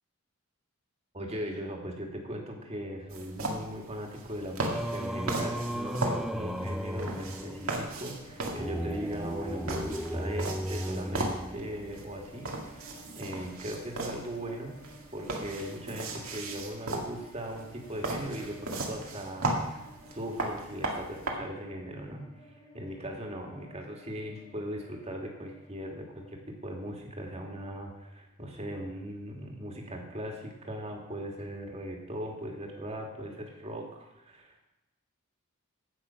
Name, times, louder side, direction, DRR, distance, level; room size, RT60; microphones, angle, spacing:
voice 1, 1.1-12.9 13.2-14.8 15.1-19.9 20.1-22.3 22.7-34.6, equal, 30° right, 1 dB, 2.0 m, -39 dB
sound 1, 3.1-21.3, right 2 dB, 85° right, 2.0 m, -37 dB
Singing, 4.6-12.0, equal, ahead, 0.3 m, -35 dB
sound 2, 7.3-26.3, equal, 45° left, 3.1 m, -55 dB
15.5 x 6.1 x 5.7 m, 0.97 s
head